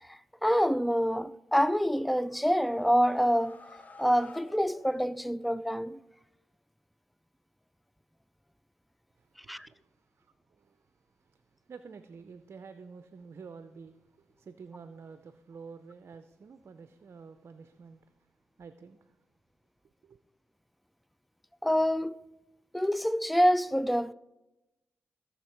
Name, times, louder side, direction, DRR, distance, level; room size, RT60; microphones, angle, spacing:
voice 1, 0.0-3.6 4.0-6.0 9.5-9.7 21.6-22.2 22.7-24.1, equal, ahead, 0.4 m, -26 dB
sound 1, 1.8-5.6, left 3 dB, 35° left, 0.9 m, -53 dB
voice 2, 9.2-10.9 11.2-18.1 18.6-19.1 20.0-20.2, right 5 dB, 55° right, 0.6 m, -50 dB
15.5 x 6.6 x 4.5 m
supercardioid pair, 45°, 5 cm